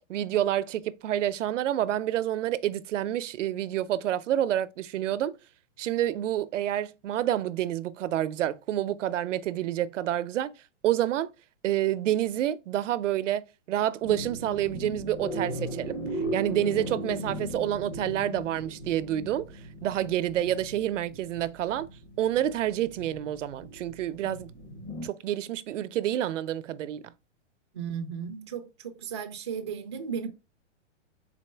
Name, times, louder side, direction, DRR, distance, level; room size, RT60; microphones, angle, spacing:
voice 1, 0.1-5.4 5.8-10.5 10.8-11.3 11.6-16.0 16.3-19.5 19.8-21.9 22.2-24.5 25.0-27.0, right 12 dB, 80° right, 0.5 m, -28 dB
sound 1, 14.0-25.1, equal, 20° left, 0.8 m, -37 dB
voice 2, 27.7-30.3, right 7 dB, 25° right, 0.3 m, -35 dB
4.1 x 3.7 x 3.2 m
hypercardioid pair, 165°, 36 cm